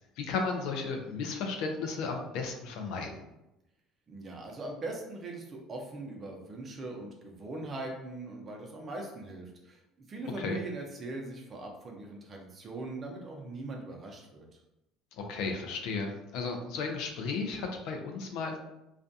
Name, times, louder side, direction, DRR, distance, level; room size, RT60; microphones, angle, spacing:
voice 1, 0.2-3.2 10.4-10.6 15.2-18.6, left 4 dB, 75° left, 3 dB, 0.5 m, -34 dB
voice 2, 4.1-9.8 10.1-14.5, right 2 dB, 35° right, 1 dB, 0.6 m, -41 dB
2.4 x 2.2 x 2.6 m, 0.91 s
supercardioid pair, 100°, 0 cm